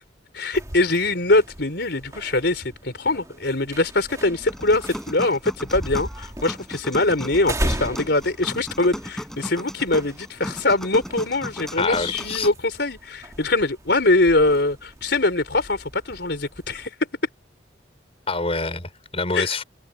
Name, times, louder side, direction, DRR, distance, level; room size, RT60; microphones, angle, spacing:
voice 1, 0.3-16.9 19.3-19.5, left 2 dB, 65° left, 4.9 m, -22 dB
sound 1, 0.5-16.9, right 1 dB, 20° right, 2.4 m, -37 dB
sound 2, 4.5-12.5, equal, ahead, 7.6 m, -36 dB
voice 2, 11.8-12.5 18.3-19.6, left 3 dB, 35° left, 4.4 m, -26 dB
head